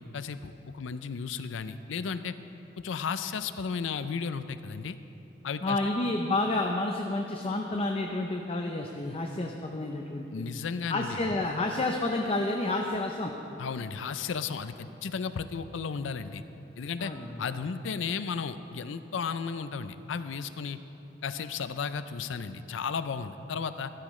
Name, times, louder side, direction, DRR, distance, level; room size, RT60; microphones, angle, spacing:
voice 1, 0.0-2.3 2.8-5.0 5.4-5.8 10.3-11.3 13.6-16.4 16.8-17.1 17.4-20.8 21.2-23.9, left 5 dB, 75° left, 12 dB, 0.5 m, -34 dB
voice 2, 5.6-10.5 10.9-13.3 17.0-17.4, left 2 dB, 30° left, 2 dB, 0.6 m, -30 dB
15.0 x 12.0 x 3.2 m, 2.9 s
head